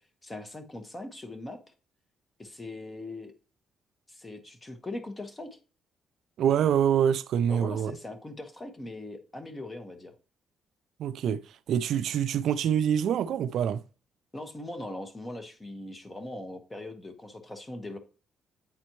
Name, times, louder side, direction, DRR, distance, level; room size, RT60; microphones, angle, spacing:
voice 1, 0.2-1.6 2.4-3.3 4.1-5.6 7.5-10.1 14.3-18.0, left 2 dB, 20° left, 1.4 m, -40 dB
voice 2, 6.4-8.0 11.0-13.8, right 9 dB, 75° right, 0.3 m, -26 dB
8.8 x 4.2 x 3.1 m
cardioid pair, 90°, 0 cm